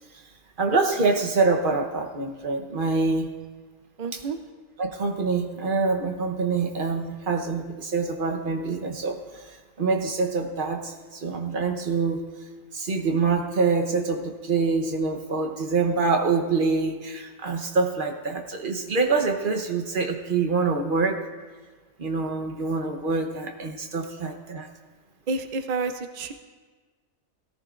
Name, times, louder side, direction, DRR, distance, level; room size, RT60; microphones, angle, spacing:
voice 1, 0.6-3.3 4.1-4.2 4.8-9.2 9.8-12.2 12.7-21.2 22.0-24.7, right 4 dB, 40° right, 4 dB, 1.1 m, -25 dB
voice 2, 4.0-4.4 25.3-26.3, right 4 dB, 60° right, 8 dB, 0.4 m, -29 dB
18.0 x 14.0 x 2.5 m, 1.4 s
omnidirectional pair, 1.4 m